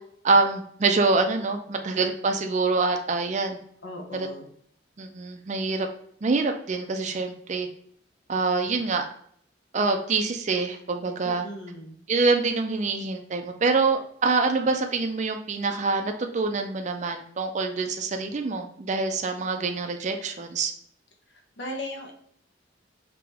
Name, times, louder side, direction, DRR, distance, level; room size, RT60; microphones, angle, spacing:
voice 1, 0.2-3.6 4.1-4.3 5.0-5.9 6.2-7.7 8.3-9.1 9.7-11.4 12.1-20.7, right 3 dB, 40° right, 5 dB, 0.4 m, -25 dB
voice 2, 3.8-4.5 11.2-12.0 21.6-22.1, left 1 dB, 65° left, 2 dB, 1.0 m, -37 dB
4.8 x 2.9 x 3.5 m, 0.65 s
head